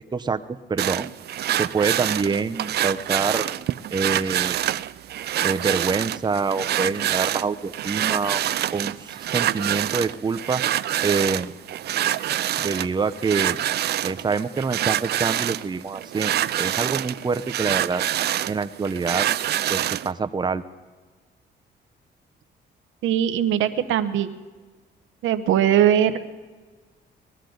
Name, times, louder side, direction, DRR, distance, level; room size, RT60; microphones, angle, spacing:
voice 1, 0.1-0.4 0.7-1.1 1.5-3.5 3.9-4.6 5.4-8.4 8.7-10.6 11.0-11.5 12.6-13.6 14.0-18.0 18.5-19.3 19.7-20.6, right 4 dB, 20° right, 10 dB, 0.7 m, -26 dB
sound 1, 0.8-20.1, right 12 dB, 55° right, 0.4 m, -26 dB
voice 2, 23.0-24.3 25.2-26.3, right 10 dB, 85° right, 10 dB, 0.9 m, -20 dB
20.5 x 13.0 x 3.9 m, 1.3 s
cardioid pair, 90°, 20 cm